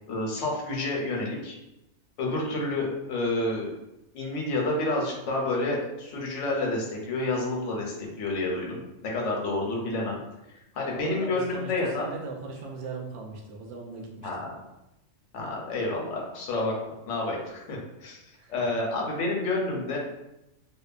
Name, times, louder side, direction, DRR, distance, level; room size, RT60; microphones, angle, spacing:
voice 1, 0.1-1.6 2.2-3.7 4.1-10.2 10.7-12.1 14.2-14.4 15.3-16.7 17.1-18.2 18.5-20.0, left 2 dB, 80° left, -1 dB, 1.0 m, -29 dB
voice 2, 10.9-14.4 18.3-18.7, right 3 dB, 85° right, 0 dB, 0.9 m, -39 dB
2.8 x 2.0 x 2.4 m, 0.91 s
omnidirectional pair, 1.2 m